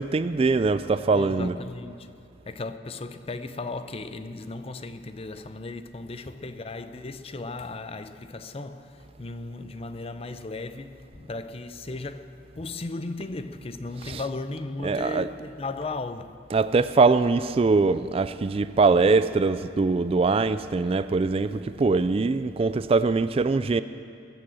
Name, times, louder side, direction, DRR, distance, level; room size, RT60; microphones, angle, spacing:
voice 1, 0.0-1.5 14.0-14.2 14.8-15.3 16.5-23.8, right 4 dB, 30° right, 0.3 m, -22 dB
voice 2, 1.1-2.1 2.5-16.4, left 3 dB, 30° left, 0.5 m, -36 dB
20.5 x 8.7 x 7.6 m
head